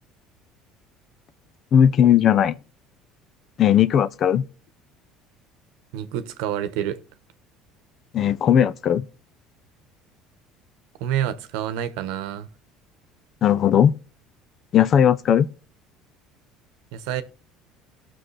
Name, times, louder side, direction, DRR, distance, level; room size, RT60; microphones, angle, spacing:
voice 1, 1.7-2.5 3.6-4.4 8.1-9.0 13.4-14.0 14.7-15.5, left 9 dB, 50° left, 0.6 m, -17 dB
voice 2, 5.9-7.0 11.0-12.5 16.9-17.2, right 10 dB, 80° right, 1.0 m, -28 dB
18.0 x 6.2 x 3.3 m
supercardioid pair, 100°, 0 cm